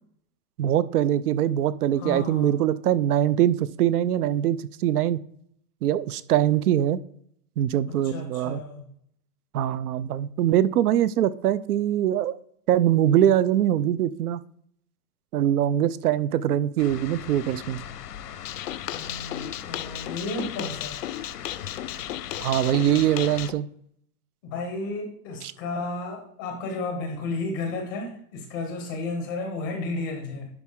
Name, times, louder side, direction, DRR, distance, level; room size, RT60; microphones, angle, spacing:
voice 1, 0.6-5.2 5.8-7.0 7.6-8.6 9.5-12.4 12.7-14.4 15.3-17.8 22.4-23.7 25.4-25.5, right 11 dB, 70° right, 17 dB, 0.6 m, -23 dB
voice 2, 1.9-2.7 8.0-8.8 18.9-21.0 24.4-30.5, left 3 dB, 15° left, 3 dB, 0.6 m, -33 dB
sound 1, 16.8-23.5, left 9 dB, 80° left, 0.9 m, -40 dB
sound 2, 18.4-23.5, left 12 dB, 60° left, 0.5 m, -35 dB
11.0 x 4.2 x 3.7 m, 0.69 s
hypercardioid pair, 170°, 46 cm